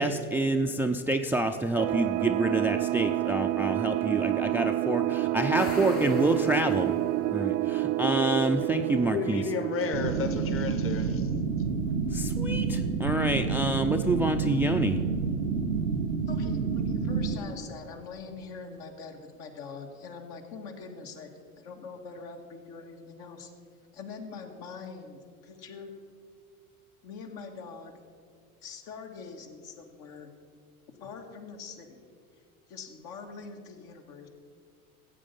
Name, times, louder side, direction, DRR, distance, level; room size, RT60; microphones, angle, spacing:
voice 1, 0.0-7.0 7.3-9.4 12.1-15.0, right 2 dB, 5° right, 6 dB, 0.4 m, -27 dB
sound 1, 1.8-11.1, right 16 dB, 60° right, 0.5 m, -29 dB
sound 2, 5.6-7.3, left 2 dB, 90° left, 2.6 m, -42 dB
voice 2, 9.1-11.3, left 6 dB, 30° left, 9 dB, 1.2 m, -32 dB
sound 3, 9.9-17.4, right 5 dB, 90° right, 1.2 m, -29 dB
voice 3, 16.3-23.5 23.9-25.9 27.0-27.9 28.6-30.3 31.0-32.0 32.7-34.3, left 5 dB, 65° left, 3 dB, 1.9 m, -43 dB
14.5 x 8.3 x 5.4 m, 2.2 s
hypercardioid pair, 85°, 43 cm